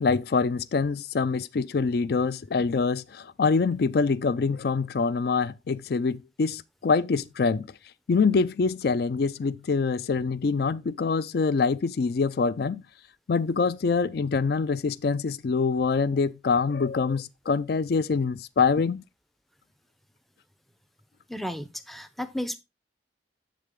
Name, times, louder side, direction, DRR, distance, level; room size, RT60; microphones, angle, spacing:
voice 1, 0.0-7.7 8.1-12.8 13.3-19.0, left 4 dB, 55° left, 0.4 m, -25 dB
voice 2, 21.3-22.6, left 1 dB, ahead, 0.5 m, -33 dB
7.5 x 6.9 x 3.5 m
head